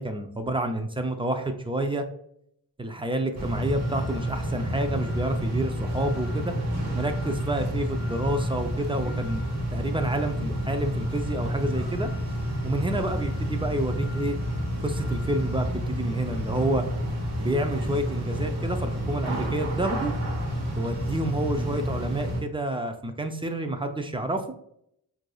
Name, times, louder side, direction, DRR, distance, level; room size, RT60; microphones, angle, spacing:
voice 1, 0.0-2.0 2.8-6.5 6.9-9.4 9.7-12.1 12.6-14.4 14.8-16.8 17.4-20.1 20.7-24.5, right 1 dB, 15° right, 6 dB, 0.5 m, -29 dB
sound 1, 3.3-22.4, equal, 40° right, 1.3 m, -29 dB
4.6 x 2.6 x 2.3 m, 0.72 s
cardioid pair, 55°, 41 cm